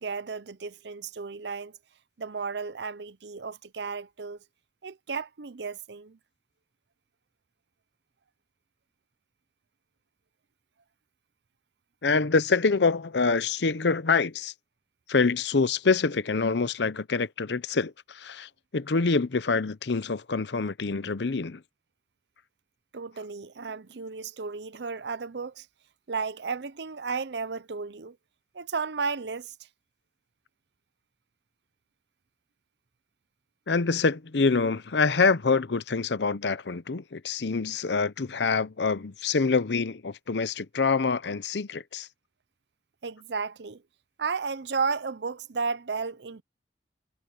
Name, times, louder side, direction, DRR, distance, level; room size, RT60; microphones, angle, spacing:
voice 1, 0.0-1.8 2.2-4.4 4.8-6.2 22.9-25.7 26.1-28.2 28.5-29.5 43.0-43.8 44.2-46.4, right 5 dB, 70° right, 0.7 m, -33 dB
voice 2, 12.0-14.5 15.1-21.6 33.7-42.1, left 4 dB, 75° left, 0.7 m, -26 dB
head